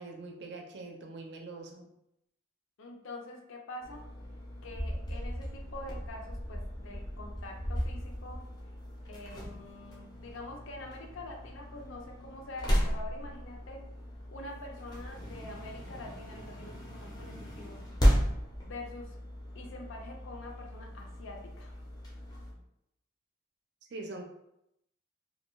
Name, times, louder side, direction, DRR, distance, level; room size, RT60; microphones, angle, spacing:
voice 1, 0.0-1.9 23.9-24.3, right 3 dB, 60° right, 2 dB, 0.4 m, -43 dB
voice 2, 2.8-4.1 4.6-8.4 9.1-13.9 14.3-17.8 18.7-19.2 19.5-21.8, left 2 dB, 85° left, 1 dB, 0.5 m, -45 dB
sound 1, 3.8-22.5, equal, 20° left, 0.4 m, -35 dB
2.2 x 2.2 x 2.9 m, 0.82 s
head